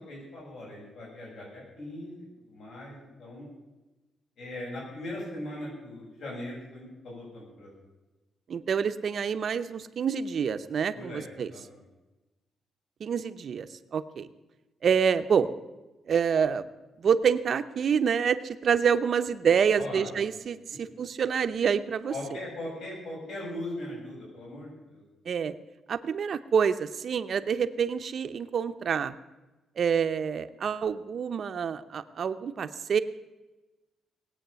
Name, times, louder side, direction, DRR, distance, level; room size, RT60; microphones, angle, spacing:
voice 1, 0.1-3.5 4.4-7.7 10.9-11.8 19.7-20.2 22.1-25.0, left 1 dB, 65° left, -5 dB, 7.3 m, -40 dB
voice 2, 8.5-11.5 13.0-13.7 13.9-14.3 14.8-15.5 16.1-16.7 17.0-22.1 25.3-25.5 25.9-29.1 29.8-33.0, right 7 dB, 50° right, 11 dB, 0.8 m, -27 dB
19.5 x 8.6 x 7.0 m, 1.1 s
cardioid pair, 135°, 0 cm